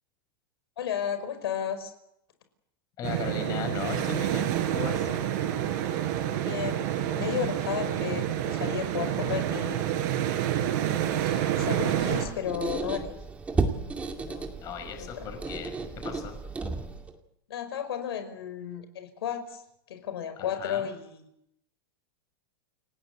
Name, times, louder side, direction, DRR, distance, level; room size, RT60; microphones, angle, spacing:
voice 1, 0.8-1.9 6.4-10.0 11.2-13.1 13.7-14.5 15.0-15.3 17.5-19.6 19.9-21.2, left 9 dB, 80° left, 9 dB, 5.1 m, -34 dB
voice 2, 3.0-5.1 14.6-16.4 20.6-20.9, left 7 dB, 30° left, 7 dB, 5.4 m, -37 dB
sound 1, 3.0-12.2, right 11 dB, 50° right, 5.0 m, -28 dB
Squeak, 12.0-17.2, right 4 dB, 10° right, 2.3 m, -33 dB
29.5 x 17.5 x 8.0 m, 0.78 s
supercardioid pair, 160°, 13 cm